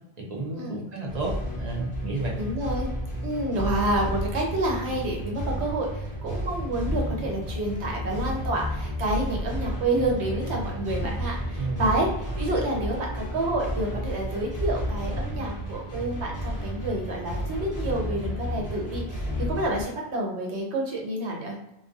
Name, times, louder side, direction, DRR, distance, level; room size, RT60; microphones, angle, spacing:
voice 1, 0.2-2.4 11.6-11.9, right 3 dB, 50° right, -2 dB, 0.6 m, -32 dB
sound 1, 1.1-19.8, equal, 30° left, 0.4 m, -32 dB
voice 2, 2.4-2.9 3.2-12.1 12.4-21.5, right 1 dB, 75° right, -1 dB, 1.0 m, -29 dB
2.4 x 2.2 x 2.5 m, 0.88 s
omnidirectional pair, 1.1 m